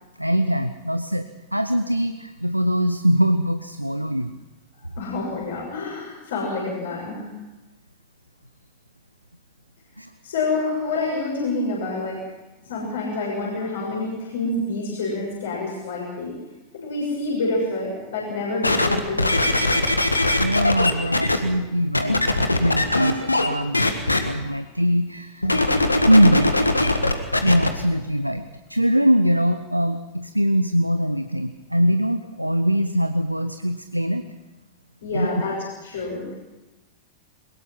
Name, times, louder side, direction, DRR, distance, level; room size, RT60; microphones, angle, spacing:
voice 1, 0.2-4.4 10.0-10.1 20.4-22.2 22.6-24.0 24.2-25.5 26.1-26.5 27.4-34.2 35.1-35.3, equal, 90° right, 10 dB, 0.7 m, -22 dB
voice 2, 5.0-7.3 10.2-12.2 12.6-16.3 16.7-19.8 35.0-35.5 35.8-36.3, left 2 dB, 60° left, -3 dB, 6.6 m, -27 dB
sound 1, 18.6-21.4 21.9-23.5 23.7-24.2 25.4-27.7 28.4-28.5, left 2 dB, 85° left, 1.7 m, -20 dB
22.5 x 20.5 x 5.9 m, 1.1 s
figure-of-eight pair, 90°, 0 cm